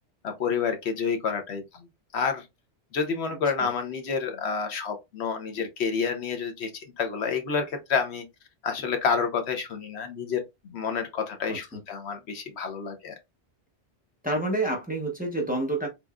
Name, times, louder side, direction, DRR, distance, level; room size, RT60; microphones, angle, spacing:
voice 1, 0.2-1.8 2.1-2.4 2.9-8.3 8.6-13.2, left 5 dB, 80° left, 1.0 m, -29 dB
voice 2, 11.5-11.8 14.2-15.9, right 2 dB, 10° right, 0.8 m, -28 dB
3.5 x 3.0 x 2.3 m
omnidirectional pair, 1.1 m